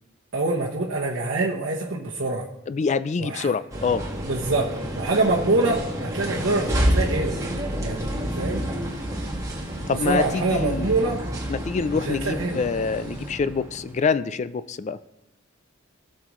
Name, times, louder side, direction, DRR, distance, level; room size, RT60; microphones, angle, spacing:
voice 1, 0.3-2.5 3.2-3.5 4.2-7.3 7.8-8.6 10.0-11.2 11.9-12.6, right 2 dB, 75° right, -4 dB, 0.9 m, -25 dB
voice 2, 2.7-4.0 9.9-11.0 11.5-15.1, left 5 dB, 35° left, 15 dB, 0.3 m, -26 dB
sound 1, 3.7-13.9, equal, 15° right, 1.5 m, -29 dB
sound 2, 6.4-13.3, left 1 dB, 80° left, 3.8 m, -49 dB
16.5 x 6.5 x 3.1 m, 0.90 s
head